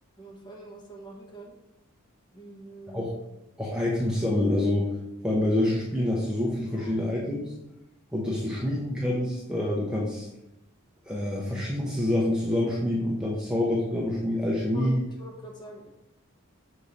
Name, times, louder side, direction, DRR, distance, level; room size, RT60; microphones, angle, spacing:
voice 1, 0.2-1.5 2.3-3.1 6.7-7.0 8.5-8.7 13.3-13.5 14.7-14.9 15.2-15.9, right 1 dB, 20° left, -1 dB, 1.0 m, -45 dB
voice 2, 3.6-5.0 5.2-7.5 8.1-10.3 11.0-15.0, left 1 dB, 5° right, -5 dB, 0.7 m, -27 dB
6.4 x 3.6 x 4.1 m, 0.87 s
head